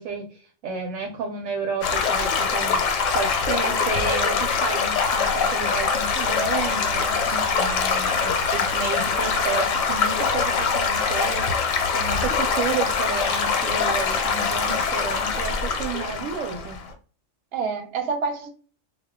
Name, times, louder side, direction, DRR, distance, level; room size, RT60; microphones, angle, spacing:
voice 1, 0.0-2.8 3.1-7.2 7.6-11.5 11.9-16.8, right 5 dB, 85° right, 3 dB, 1.0 m, -31 dB
Stream / Gurgling / Trickle dribble, 1.8-16.9, left 5 dB, 85° left, 1.0 m, -23 dB
voice 2, 7.3-7.8 17.5-18.6, right 5 dB, 60° right, 5 dB, 0.8 m, -29 dB
2.2 x 2.1 x 3.4 m, 0.39 s
omnidirectional pair, 1.3 m